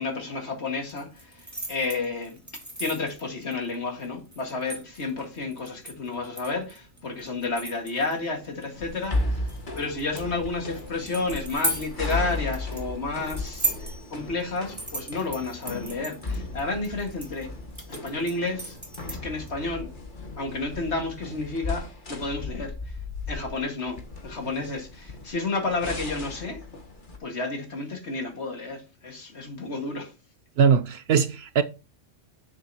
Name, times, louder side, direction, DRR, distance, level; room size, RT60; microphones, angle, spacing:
voice 1, 0.0-2.4 2.8-9.5 9.8-17.5 17.9-18.8 19.1-19.9 20.4-22.7 23.3-26.6 27.2-30.1, left 3 dB, 60° left, 2.2 m, -31 dB
sound 1, 0.9-19.5, right 2 dB, 15° right, 2.2 m, -38 dB
sound 2, 8.7-27.2, left 2 dB, 40° left, 1.5 m, -35 dB
voice 2, 30.6-31.6, right 6 dB, 65° right, 0.7 m, -21 dB
9.5 x 7.5 x 2.9 m
omnidirectional pair, 1.3 m